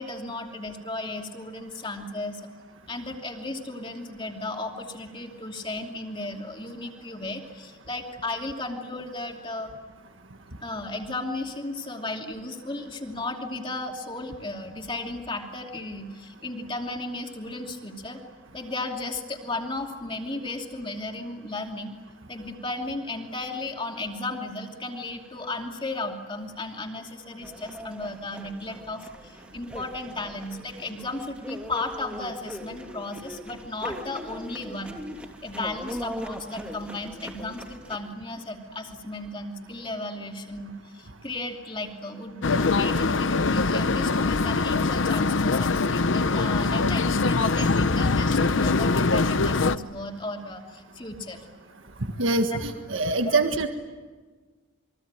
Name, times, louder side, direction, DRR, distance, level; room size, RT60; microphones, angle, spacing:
voice 1, 0.0-2.4 2.9-9.7 10.6-18.2 18.5-21.9 22.3-35.0 35.4-51.4 52.5-52.6 53.2-53.4, left 2 dB, 25° left, 2 dB, 2.7 m, -35 dB
sound 1, 27.4-38.0, equal, 5° right, 2.7 m, -40 dB
sound 2, 42.4-49.8, left 3 dB, 65° left, 0.8 m, -23 dB
voice 2, 52.2-53.7, right 3 dB, 70° right, 6 dB, 1.7 m, -24 dB
28.0 x 23.0 x 9.0 m, 1.4 s
head